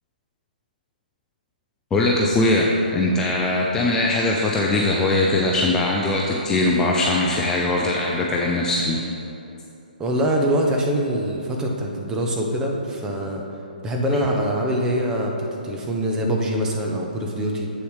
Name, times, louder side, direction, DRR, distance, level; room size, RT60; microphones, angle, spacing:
voice 1, 1.9-9.0, left 2 dB, 10° left, -3 dB, 0.5 m, -21 dB
voice 2, 10.0-13.4 13.8-17.7, equal, 10° right, 0 dB, 0.9 m, -24 dB
7.8 x 7.0 x 4.9 m, 2.8 s
hypercardioid pair, 150°, 5 cm